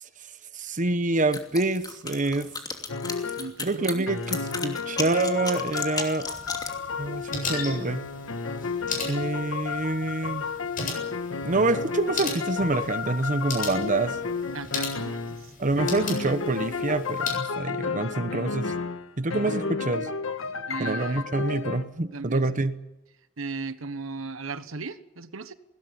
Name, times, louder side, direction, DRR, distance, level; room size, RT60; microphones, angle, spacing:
voice 1, 0.5-2.5 3.6-6.3 7.0-8.0 9.0-10.4 11.4-14.2 15.6-18.7 19.2-20.1 20.8-22.7, right 2 dB, 40° right, 11 dB, 1.1 m, -26 dB
sound 1, 1.3-6.8, left 4 dB, 20° left, 2.7 m, -34 dB
sound 2, 2.9-3.5 4.1-15.5 15.8-21.8, left 5 dB, 80° left, 1.5 m, -32 dB
voice 2, 3.4-4.1 14.5-15.8 20.7-21.3 22.1-22.5 23.4-25.5, right 4 dB, 85° right, 13 dB, 1.2 m, -37 dB
sound 3, 6.3-17.4, left 4 dB, 45° left, 7.8 m, -37 dB
20.5 x 17.0 x 9.9 m, 0.96 s
head